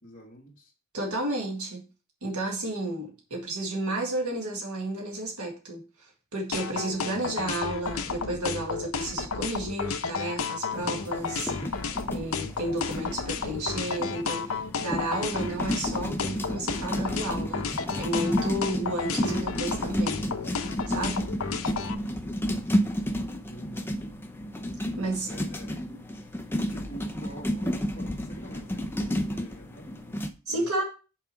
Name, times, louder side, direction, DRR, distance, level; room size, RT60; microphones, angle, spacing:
voice 1, 0.0-0.7 23.5-23.9 25.2-25.8 26.1-30.2 30.5-30.7, right 1 dB, 35° left, -4 dB, 1.5 m, -47 dB
voice 2, 0.9-1.9 2.2-11.8 12.1-17.7 18.0-20.2 20.9-21.2 25.0-25.3 30.5-30.8, right 1 dB, 90° right, 0 dB, 1.9 m, -32 dB
sound 1, 6.5-21.9, left 5 dB, 70° left, 0.8 m, -32 dB
sound 2, 10.7-30.3, equal, 10° left, 0.6 m, -32 dB
5.8 x 4.9 x 4.5 m, 0.34 s
head